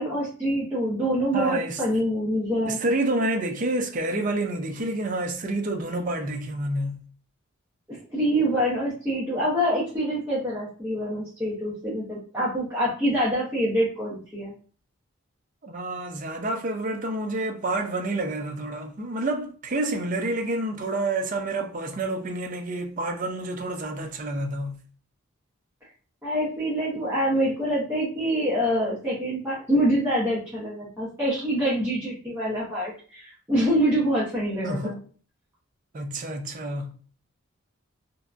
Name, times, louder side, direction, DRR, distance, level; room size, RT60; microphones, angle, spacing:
voice 1, 0.0-2.8 7.9-14.5 26.2-35.0, equal, 10° right, 0.7 m, -25 dB
voice 2, 1.3-1.8 2.7-7.0 15.6-24.7 34.6-34.9 35.9-36.9, right 2 dB, 40° right, 0.4 m, -28 dB
2.7 x 2.2 x 2.4 m
head